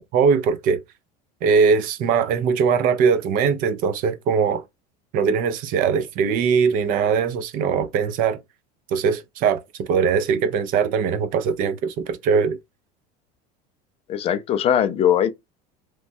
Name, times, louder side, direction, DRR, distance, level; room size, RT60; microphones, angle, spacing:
voice 1, 0.1-0.8 1.4-4.6 5.1-8.4 8.9-12.6, right 6 dB, 50° right, 0.5 m, -21 dB
voice 2, 14.1-15.3, left 9 dB, 30° left, 0.4 m, -20 dB
3.1 x 2.2 x 2.6 m
cardioid pair, 140°, 19 cm